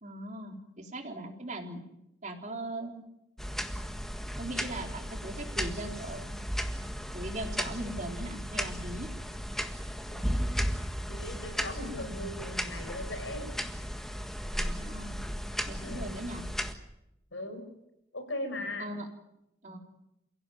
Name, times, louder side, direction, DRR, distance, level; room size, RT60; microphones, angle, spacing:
voice 1, 0.0-1.8 2.2-3.0 4.4-6.4 7.1-9.1 14.5-15.2 15.7-16.5 18.8-19.1 19.6-19.8, right 1 dB, 40° right, 3 dB, 3.8 m, -39 dB
sound 1, 3.4-16.7, equal, ahead, 1.6 m, -35 dB
voice 2, 10.1-10.7 11.1-13.5 15.8-16.1 17.3-17.6 18.1-18.9, left 1 dB, 90° left, 7 dB, 5.8 m, -39 dB
29.0 x 16.5 x 9.4 m, 0.87 s
head